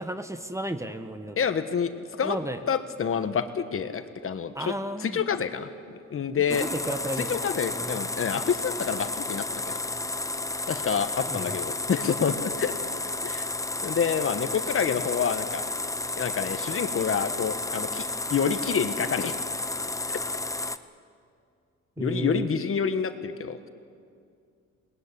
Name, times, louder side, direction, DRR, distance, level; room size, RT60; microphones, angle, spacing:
voice 1, 0.0-1.4 2.2-2.6 4.5-5.2 6.6-7.4 7.7-8.0 11.3-11.5 22.0-22.5, right 1 dB, 10° right, 9 dB, 1.3 m, -33 dB
voice 2, 1.4-2.4 2.7-4.7 5.0-6.7 7.3-9.8 10.7-12.9 13.2-13.5 13.8-15.6 16.1-19.3 22.0-23.7, left 7 dB, 45° left, 10 dB, 1.4 m, -28 dB
sound 1, 6.5-20.8, left 2 dB, 10° left, 0.8 m, -32 dB
20.5 x 19.5 x 9.9 m, 2.3 s
cardioid pair, 90°, 30 cm